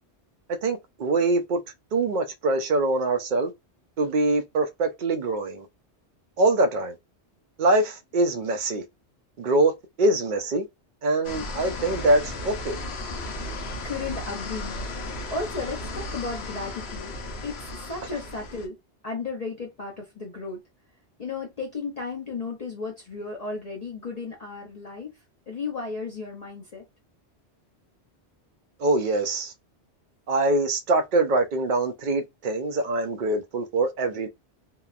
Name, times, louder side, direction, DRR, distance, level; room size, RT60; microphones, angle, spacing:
voice 1, 0.6-1.6 1.9-3.5 4.0-5.7 6.4-6.9 7.6-8.8 9.4-9.7 10.0-10.6 11.0-12.8 28.8-29.5 30.3-34.3, right 2 dB, 60° right, 0.6 m, -24 dB
sound 1, 11.2-18.7, left 2 dB, 70° left, 0.9 m, -35 dB
voice 2, 13.8-14.9 15.3-17.1 17.4-18.8 19.0-20.6 21.2-25.2 25.5-26.8, left 4 dB, 45° left, 0.6 m, -34 dB
2.8 x 2.1 x 2.3 m
omnidirectional pair, 1.1 m